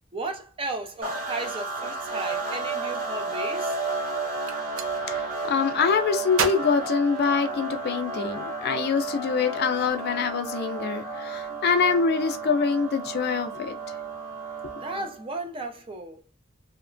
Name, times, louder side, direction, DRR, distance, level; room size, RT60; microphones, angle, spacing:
voice 1, 0.1-3.8 14.8-16.2, right 2 dB, 25° right, 0.5 m, -35 dB
sound 1, 1.0-15.2, right 3 dB, 45° right, 0.9 m, -32 dB
Gunshot gunfire, 4.4-4.9 6.3-7.8, right 6 dB, 90° right, 0.5 m, -31 dB
voice 2, 5.1-13.8, left 5 dB, 55° left, 0.4 m, -25 dB
2.8 x 2.1 x 2.5 m
head